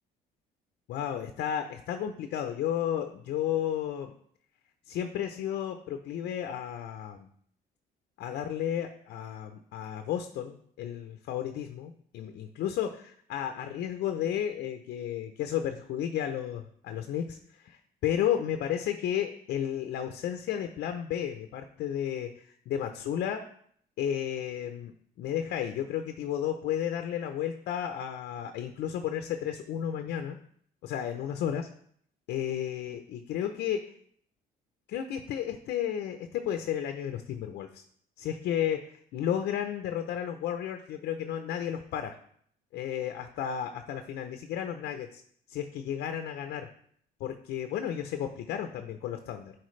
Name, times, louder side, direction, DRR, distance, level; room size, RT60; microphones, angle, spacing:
voice 1, 0.9-4.1 4.9-7.3 8.2-23.4 24.0-24.9 25.2-30.4 30.8-31.7 32.3-33.8 34.9-37.8 38.2-42.2 42.7-45.2 45.5-46.7 47.2-49.5, left 10 dB, 70° left, 6 dB, 0.7 m, -33 dB
11.0 x 4.3 x 3.2 m, 0.63 s
cardioid pair, 110°, 17 cm